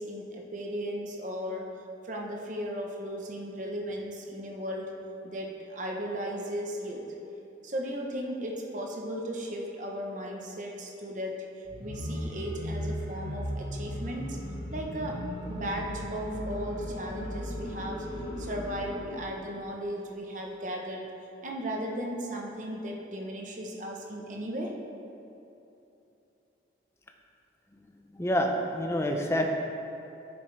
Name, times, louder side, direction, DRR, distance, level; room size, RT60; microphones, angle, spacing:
voice 1, 0.0-1.7 2.0-4.9 5.2-7.0 7.6-11.5 11.8-14.4 14.7-15.2 15.5-18.1 18.4-21.0 21.4-24.7, equal, 40° right, 0 dB, 0.9 m, -36 dB
sound 1, 11.6-19.3, equal, 70° left, 1.5 m, -36 dB
voice 2, 28.2-29.5, equal, 15° left, 2 dB, 0.6 m, -27 dB
10.0 x 7.1 x 3.3 m, 2.9 s
head